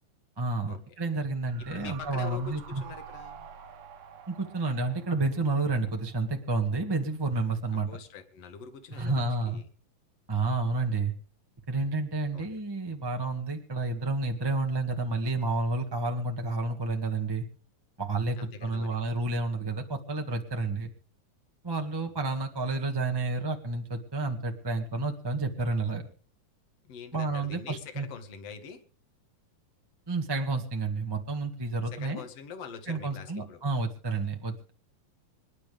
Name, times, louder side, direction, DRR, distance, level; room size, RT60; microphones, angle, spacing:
voice 1, 0.4-2.8 4.3-7.9 9.0-9.6 10.3-11.1 11.7-17.4 18.0-20.9 21.6-26.0 27.1-28.1 30.1-32.2 32.9-34.7, right 3 dB, 15° right, 3 dB, 0.7 m, -30 dB
sound 1, 1.4-6.7 7.0-7.1, right 7 dB, 65° right, 2.8 m, -48 dB
voice 2, 1.7-3.5 7.8-9.7 12.3-12.6 18.4-19.0 26.9-28.8 31.9-33.6, left 6 dB, 50° left, 6 dB, 2.7 m, -44 dB
27.0 x 10.5 x 3.6 m, 0.39 s
omnidirectional pair, 4.1 m